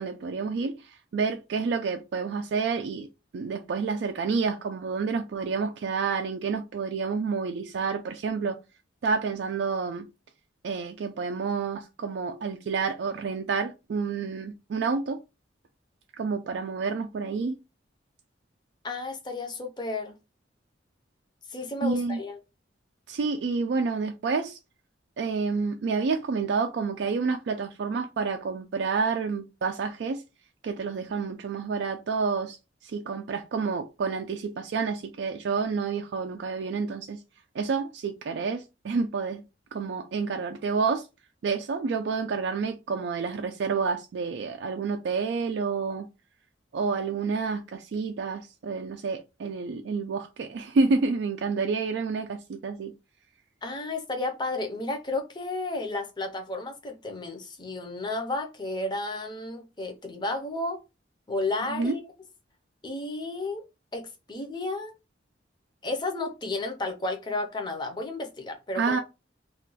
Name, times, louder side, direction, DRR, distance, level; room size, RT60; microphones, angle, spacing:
voice 1, 0.0-3.1 3.3-8.6 9.0-10.1 10.6-15.2 16.2-17.6 21.8-22.2 23.1-24.6 25.2-30.2 30.6-37.2 37.5-39.4 39.7-41.1 41.4-46.1 46.7-52.9 61.7-62.0 68.7-69.0, right 4 dB, 65° right, 0.3 m, -29 dB
voice 2, 18.8-20.2 21.5-22.4 53.6-60.8 61.3-62.0 62.8-63.6 63.9-64.9 65.8-69.0, left 2 dB, 25° left, 0.6 m, -32 dB
2.4 x 2.2 x 3.8 m
head